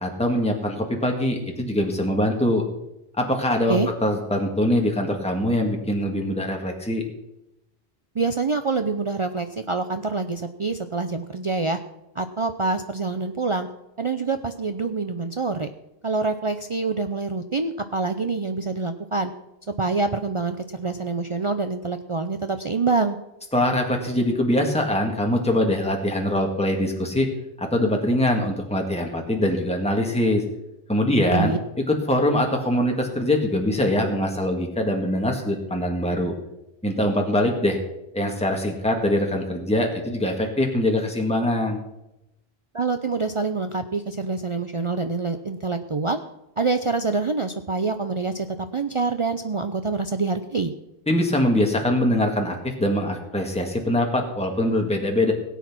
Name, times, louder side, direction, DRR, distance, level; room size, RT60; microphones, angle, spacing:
voice 1, 0.0-2.6 3.2-7.0 23.5-27.3 27.6-30.4 30.9-31.5 31.9-36.3 36.8-37.8 38.1-41.8 51.1-55.3, left 1 dB, 5° left, 1 dB, 1.9 m, -23 dB
voice 2, 8.1-11.8 12.2-13.7 14.0-15.7 16.0-19.3 19.8-23.2 31.3-31.6 42.7-46.2 46.6-50.7, right 3 dB, 35° right, 7 dB, 0.6 m, -26 dB
17.5 x 8.3 x 6.1 m, 0.89 s
omnidirectional pair, 1.0 m